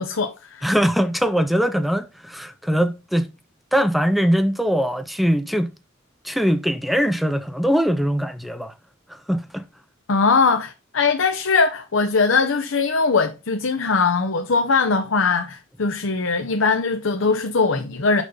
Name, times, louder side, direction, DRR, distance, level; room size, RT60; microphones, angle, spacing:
voice 1, 0.0-0.7 10.1-18.2, left 4 dB, 70° left, 0.8 m, -21 dB
voice 2, 0.6-3.3 3.7-5.7 6.2-8.7 9.1-9.6, equal, ahead, 0.5 m, -21 dB
6.3 x 5.5 x 5.2 m
head